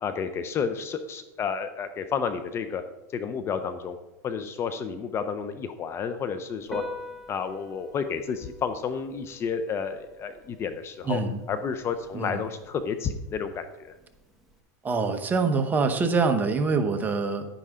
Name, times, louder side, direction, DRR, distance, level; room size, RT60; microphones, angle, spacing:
voice 1, 0.0-2.8 3.1-4.0 4.2-6.8 7.3-11.2 11.5-13.9, left 6 dB, 25° left, 10 dB, 0.7 m, -31 dB
Piano, 6.6-14.6, left 1 dB, ahead, 1.3 m, -45 dB
voice 2, 11.0-11.4 12.1-12.4 14.8-17.5, right 4 dB, 20° right, 6 dB, 1.1 m, -25 dB
10.5 x 10.0 x 3.8 m, 0.95 s
supercardioid pair, 135°, 10 cm